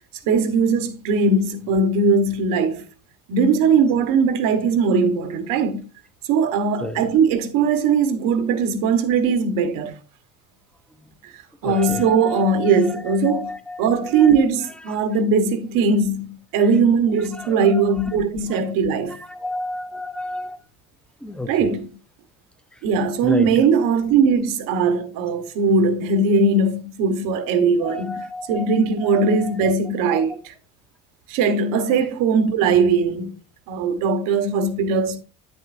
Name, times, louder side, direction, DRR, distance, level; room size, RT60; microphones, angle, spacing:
voice 1, 0.3-2.8 3.3-5.8 6.3-10.0 11.2-11.3 11.6-13.5 13.8-19.2 21.5-21.9 22.8-28.2 28.5-30.5 31.3-33.3 33.7-35.2, right 4 dB, 85° right, 1.3 m, -20 dB
voice 2, 6.7-7.1 11.0-11.1 11.6-14.7 15.1-15.2 16.6-16.8 17.1-18.2 18.5-18.6 18.9-20.6 21.2-21.8 22.7-22.8 23.2-23.7 27.8-29.7 30.0-30.3, left 2 dB, 5° left, 0.5 m, -32 dB
9.1 x 7.6 x 2.6 m
cardioid pair, 155°, 32 cm